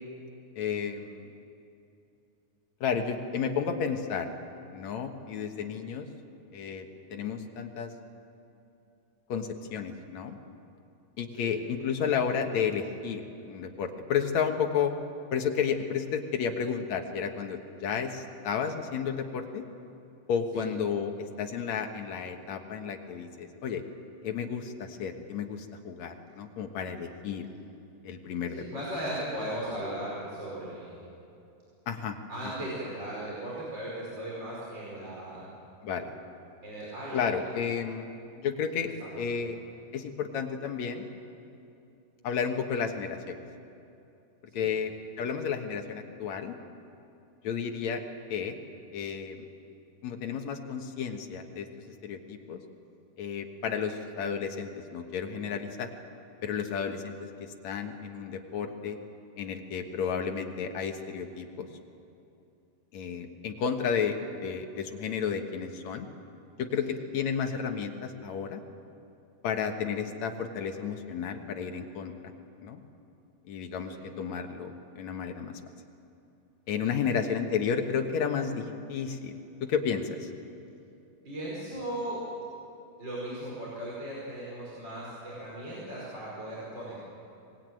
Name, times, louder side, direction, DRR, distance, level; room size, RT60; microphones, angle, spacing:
voice 1, 0.6-1.3 2.8-4.3 4.7-6.1 6.5-7.9 9.3-10.4 11.2-14.9 15.3-19.6 20.3-23.8 24.2-27.5 28.0-28.6 31.9-32.2 35.8-36.1 37.1-38.1 38.4-38.9 39.2-39.6 39.9-41.0 42.2-43.4 44.5-44.9 45.2-46.6 47.4-48.0 48.3-48.6 48.9-49.4 50.0-52.6 53.2-55.9 56.4-59.0 59.4-61.7 62.9-64.2 64.4-66.1 66.6-68.6 69.4-72.1 72.6-72.8 73.5-75.5 76.7-79.3 79.6-80.3, left 7 dB, 60° left, 4 dB, 2.1 m, -32 dB
voice 2, 28.5-31.0 32.3-35.4 36.6-37.3 39.0-39.3 44.5-44.7 66.8-66.9 73.9-74.0 77.0-77.1 81.3-82.2 83.0-86.9, right 1 dB, 25° right, -6 dB, 5.6 m, -37 dB
25.0 x 20.5 x 9.3 m, 2.7 s
omnidirectional pair, 4.6 m